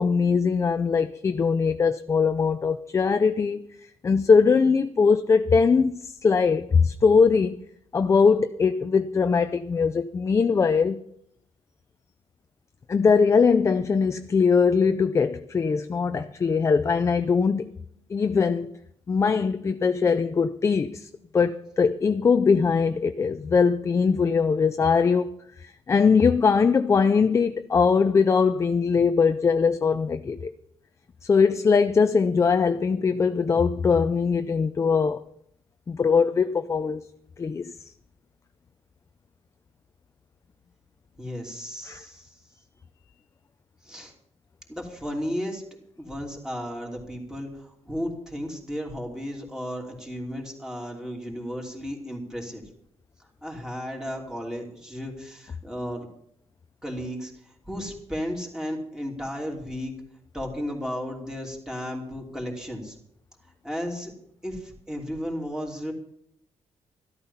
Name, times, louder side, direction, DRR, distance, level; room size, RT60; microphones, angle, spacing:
voice 1, 0.0-3.6 4.0-7.6 7.9-11.0 12.9-17.7 18.1-18.7 19.1-25.3 25.6-30.5 31.2-35.2 35.9-37.0 37.4-37.7 41.9-42.0, left 5 dB, 25° left, 0.5 m, -21 dB
voice 2, 41.2-42.4 43.8-44.1 44.7-45.6 46.0-52.6 53.4-56.1 56.8-60.0 60.3-62.9 63.6-64.1 64.4-65.9, equal, 5° right, 3.0 m, -34 dB
13.5 x 12.5 x 5.6 m
wide cardioid pair, 160°, 11 cm